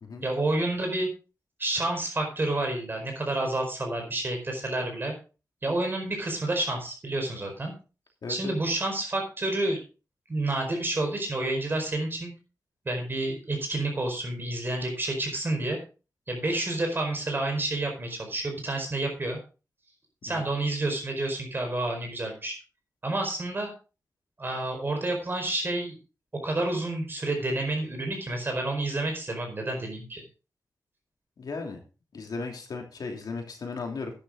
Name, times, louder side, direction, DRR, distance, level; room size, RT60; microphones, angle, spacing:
voice 1, 0.2-1.1 1.6-5.1 5.6-7.7 8.3-9.8 10.3-12.3 12.8-15.8 16.3-19.4 20.2-22.5 23.0-23.7 24.4-26.0 26.4-30.2, right 2 dB, 35° right, 3 dB, 4.7 m, -29 dB
voice 2, 8.2-8.5 20.3-20.4 31.4-31.8 32.1-34.1, left 4 dB, 80° left, 2 dB, 2.8 m, -36 dB
11.5 x 9.9 x 3.8 m, 0.33 s
wide cardioid pair, 145°, 7 cm